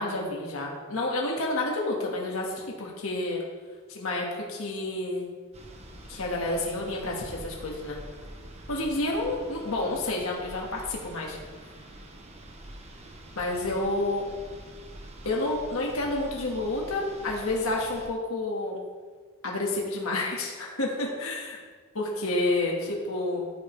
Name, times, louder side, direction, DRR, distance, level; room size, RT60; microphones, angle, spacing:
voice 1, 0.0-3.4 3.9-5.3 6.1-8.0 8.7-11.4 13.3-14.2 15.2-18.8 19.4-21.6 21.9-23.5, left 2 dB, 70° left, -1 dB, 1.6 m, -29 dB
sound 1, 5.5-18.1, right 1 dB, 30° right, 0.9 m, -45 dB
14.0 x 5.0 x 3.3 m, 1.5 s
head